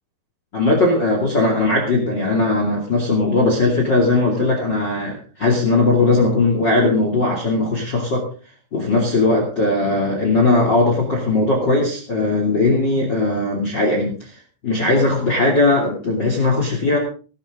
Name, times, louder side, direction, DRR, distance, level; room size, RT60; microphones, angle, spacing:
voice 1, 0.5-8.3 8.7-17.0, left 2 dB, 30° left, 1 dB, 2.7 m, -18 dB
18.5 x 12.0 x 3.7 m, 0.36 s
omnidirectional pair, 5.1 m